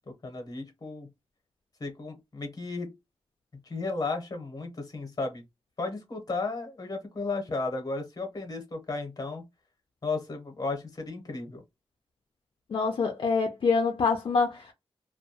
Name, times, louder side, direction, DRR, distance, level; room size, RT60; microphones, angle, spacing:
voice 1, 0.1-1.1 1.8-2.9 3.6-5.4 5.8-9.4 10.0-11.6, left 3 dB, 40° left, 0.8 m, -34 dB
voice 2, 12.7-14.7, left 4 dB, 60° left, 0.4 m, -25 dB
2.2 x 2.2 x 2.8 m
wide cardioid pair, 130°, 10 cm